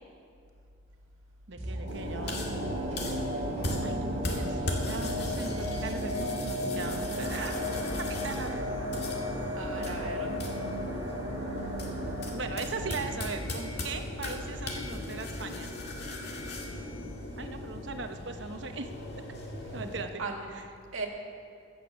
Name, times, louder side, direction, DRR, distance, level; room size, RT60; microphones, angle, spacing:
voice 1, 1.5-2.4 3.8-4.6 4.8-7.5 8.0-8.6 12.3-15.7 17.4-18.9 19.7-20.2 20.5-20.7, right 3 dB, 60° right, 6 dB, 1.0 m, -39 dB
sound 1, 1.6-14.7 15.0-15.1, equal, 30° right, 2.8 m, -35 dB
sound 2, 1.9-20.0, left 1 dB, 55° left, 1.9 m, -37 dB
voice 2, 9.3-10.3 20.2-20.5 20.9-21.1, right 3 dB, 90° right, 2 dB, 1.9 m, -37 dB
15.0 x 8.2 x 7.1 m, 2.4 s
head